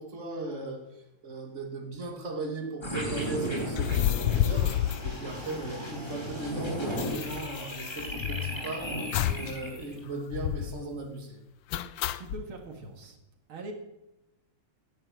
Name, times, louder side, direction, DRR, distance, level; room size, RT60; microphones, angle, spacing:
voice 1, 0.0-4.1 4.4-11.4, right 2 dB, 35° right, 2 dB, 2.7 m, -37 dB
sound 1, 2.8-10.0, equal, 10° left, 3.1 m, -36 dB
sound 2, 3.7-6.0 6.2-6.3 6.5-8.6 9.1-9.5 9.8-9.9 10.3-10.8 11.7-12.4, left 12 dB, 75° left, 1.3 m, -30 dB
voice 2, 12.1-13.2 13.5-13.7, right 3 dB, 90° right, 3 dB, 2.9 m, -42 dB
18.0 x 10.0 x 6.5 m, 0.95 s
omnidirectional pair, 2.2 m